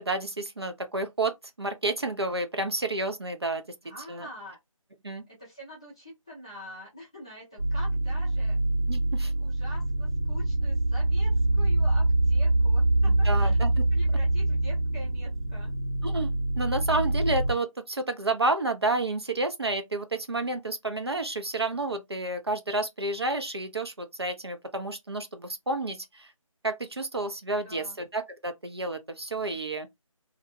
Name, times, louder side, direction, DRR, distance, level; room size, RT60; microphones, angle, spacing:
voice 1, 0.0-3.6 4.1-4.3 5.0-5.2 8.9-9.3 13.0-13.8 16.0-26.3 26.6-29.9, right 2 dB, 50° right, 0.4 m, -30 dB
voice 2, 3.8-4.6 5.3-8.6 9.2-13.6 13.9-15.7 27.6-28.0, left 1 dB, 10° left, 0.5 m, -45 dB
sound 1, 7.6-17.5, right 2 dB, 80° right, 0.9 m, -25 dB
2.5 x 2.1 x 2.6 m
figure-of-eight pair, 160°, 18 cm